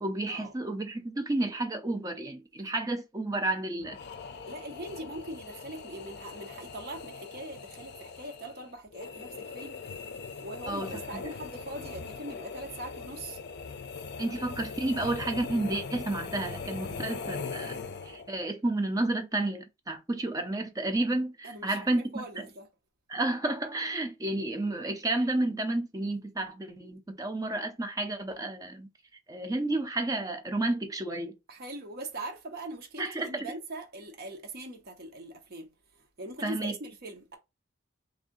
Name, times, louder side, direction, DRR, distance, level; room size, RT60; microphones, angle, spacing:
voice 1, 0.0-4.0 10.7-11.0 14.2-17.8 18.0-22.5 23.1-28.9 29.3-31.4 33.0-33.5 36.4-36.8, right 2 dB, 15° right, 0.5 m, -31 dB
sound 1, 3.8-18.4, left 5 dB, 55° left, 0.5 m, -41 dB
voice 2, 4.5-9.8 10.4-13.4 21.4-22.7 31.5-35.7 36.2-37.4, right 2 dB, 50° right, 0.8 m, -41 dB
3.4 x 2.6 x 3.8 m
head